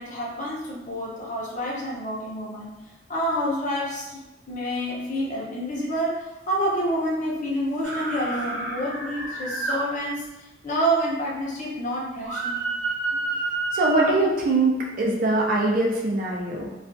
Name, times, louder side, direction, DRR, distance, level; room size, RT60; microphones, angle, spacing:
voice 1, 0.0-2.8 3.1-12.7, equal, 45° left, -4 dB, 0.6 m, -28 dB
sound 1, 7.8-9.8 12.2-14.1, right 3 dB, 85° right, 0.8 m, -29 dB
voice 2, 13.7-16.7, right 2 dB, 50° right, -2 dB, 0.5 m, -22 dB
2.4 x 2.3 x 2.4 m, 1.0 s
head